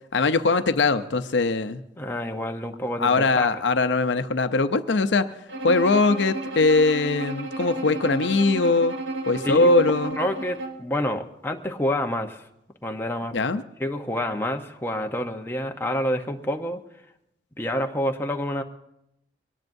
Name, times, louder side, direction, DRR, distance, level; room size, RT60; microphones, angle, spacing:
voice 1, 0.1-1.8 3.0-5.3 5.6-8.9 9.3-10.2 13.3-13.6, left 3 dB, 75° left, 10 dB, 0.6 m, -21 dB
voice 2, 2.0-3.5 9.4-9.7 10.2-12.4 12.8-13.3 13.8-16.8 17.6-18.6, left 1 dB, 15° left, 3 dB, 0.8 m, -28 dB
Bowed string instrument, 5.5-10.9, right 2 dB, 80° right, 1.4 m, -32 dB
23.0 x 18.5 x 2.6 m, 0.84 s
head